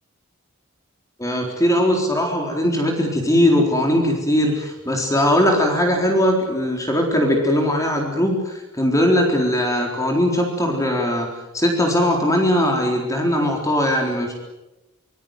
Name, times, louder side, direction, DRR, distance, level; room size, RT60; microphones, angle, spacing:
voice 1, 1.2-11.3 11.5-14.3, equal, 15° left, 2 dB, 4.0 m, -20 dB
25.0 x 21.0 x 9.2 m, 0.97 s
head